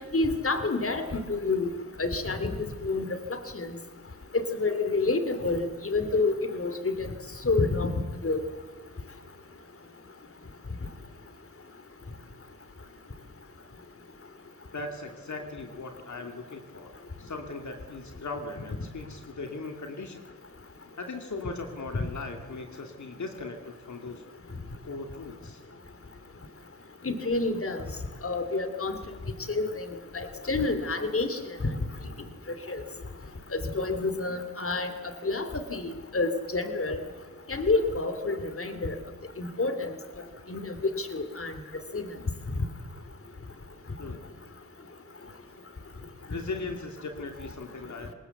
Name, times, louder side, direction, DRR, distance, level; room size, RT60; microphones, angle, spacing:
voice 1, 0.1-1.7 2.0-3.7 4.3-7.1 7.4-7.9 8.2-8.4 27.0-27.8 28.2-29.0 29.5-29.9 30.1-31.4 32.7-32.8 33.5-34.9 35.2-37.0 37.5-38.9 39.4-39.9 40.5-41.5 41.9-42.1, left 3 dB, 45° left, 9 dB, 2.9 m, -28 dB
voice 2, 14.7-16.9 17.2-20.2 21.0-24.2 24.8-25.6 44.0-44.3 46.3-48.1, left 3 dB, 70° left, 4 dB, 2.5 m, -38 dB
26.0 x 20.5 x 8.2 m, 1.4 s
cardioid pair, 60°, 30 cm